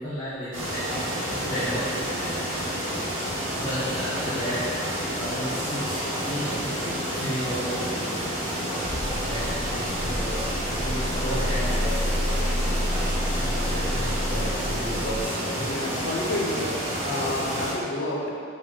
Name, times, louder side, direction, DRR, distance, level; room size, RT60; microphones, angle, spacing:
voice 1, 0.0-2.6 3.6-4.7 5.2-6.7 7.1-8.2 9.2-12.1 13.4-15.9, equal, 25° left, -13 dB, 0.8 m, -33 dB
sound 1, 0.5-17.7, equal, 85° right, 1.0 m, -29 dB
sound 2, 8.8-15.2, equal, 10° left, 0.3 m, -29 dB
voice 2, 15.6-16.8 17.0-18.3, left 1 dB, 65° left, -1 dB, 0.6 m, -29 dB
4.1 x 2.2 x 4.4 m, 2.4 s
head